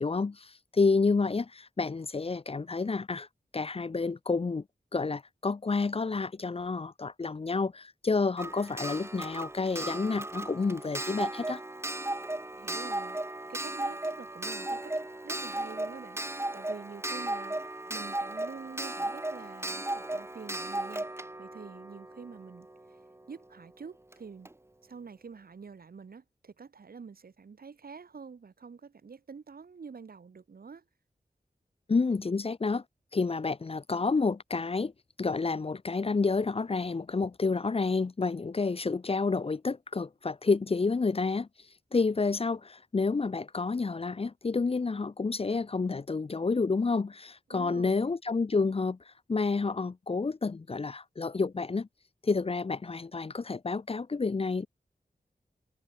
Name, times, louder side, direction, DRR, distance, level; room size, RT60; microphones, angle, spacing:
voice 1, 0.0-3.3 3.5-4.6 4.9-11.6 31.9-32.8 33.1-34.9 35.2-41.5 41.9-49.0 49.3-51.9 52.2-54.7, left 4 dB, 35° left, 0.5 m, -29 dB
Clock, 8.4-23.0 24.1-24.2 24.4-24.5, right 1 dB, 15° right, 1.0 m, -36 dB
voice 2, 12.5-13.2 13.5-14.9 15.2-22.7 23.3-24.5 24.8-30.8 47.5-48.1, right 5 dB, 65° right, 1.1 m, -47 dB
wide cardioid pair, 65°, 16 cm